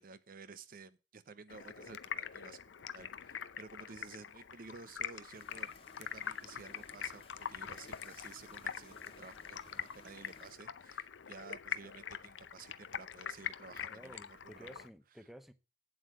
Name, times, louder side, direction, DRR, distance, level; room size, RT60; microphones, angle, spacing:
voice 1, 0.0-2.6 2.9-5.7 6.0-14.9, right 4 dB, 50° right, 0.6 m, -53 dB
Stream, 1.5-14.9, left 8 dB, 90° left, 0.6 m, -44 dB
sound 1, 5.3-10.5, left 2 dB, 30° left, 1.5 m, -59 dB
voice 2, 13.9-15.5, equal, ahead, 0.8 m, -53 dB
8.5 x 7.7 x 6.2 m
head